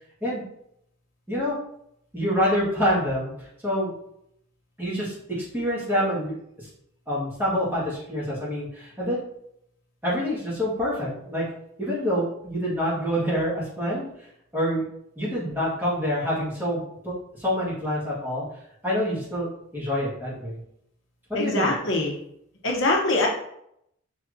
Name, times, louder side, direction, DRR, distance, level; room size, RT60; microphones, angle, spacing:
voice 1, 2.1-3.9 4.8-6.7 7.1-9.2 10.0-11.4 11.8-14.1 14.5-14.8 15.2-18.4 18.8-20.6 21.3-21.7, equal, 10° right, -8 dB, 1.7 m, -27 dB
voice 2, 21.3-22.2 22.6-23.3, left 2 dB, 65° left, 0 dB, 0.9 m, -23 dB
5.7 x 3.3 x 2.6 m, 0.75 s
head